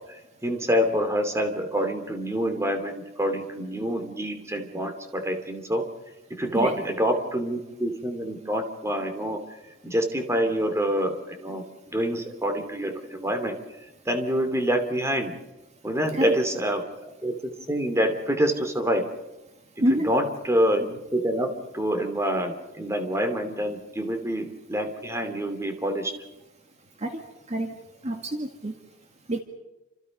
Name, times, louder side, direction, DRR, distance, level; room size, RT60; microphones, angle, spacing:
voice 1, 0.4-5.9 6.3-9.4 9.8-13.6 14.0-15.3 15.8-16.8 17.2-19.1 19.9-26.1, equal, 15° right, 6 dB, 2.8 m, -26 dB
voice 2, 28.0-28.7 29.3-29.4, right 1 dB, 35° right, 4 dB, 1.8 m, -26 dB
29.0 x 26.5 x 5.4 m, 1.0 s
head